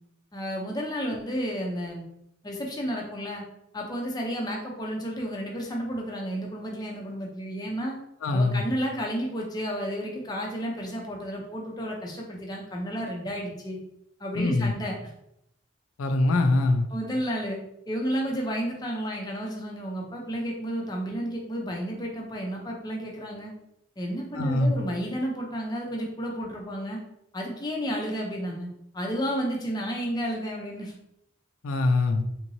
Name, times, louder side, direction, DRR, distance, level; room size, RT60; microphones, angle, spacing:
voice 1, 0.3-2.1 2.4-3.4 3.7-8.0 8.3-13.8 14.2-15.0 16.9-17.6 17.9-23.5 24.0-27.0 27.3-28.7 28.9-30.9, equal, 20° left, -1 dB, 0.5 m, -31 dB
voice 2, 8.2-8.6 14.3-14.7 16.0-16.9 24.3-24.7 31.6-32.2, left 2 dB, 85° left, 6 dB, 0.4 m, -23 dB
3.6 x 2.9 x 2.7 m, 0.80 s
head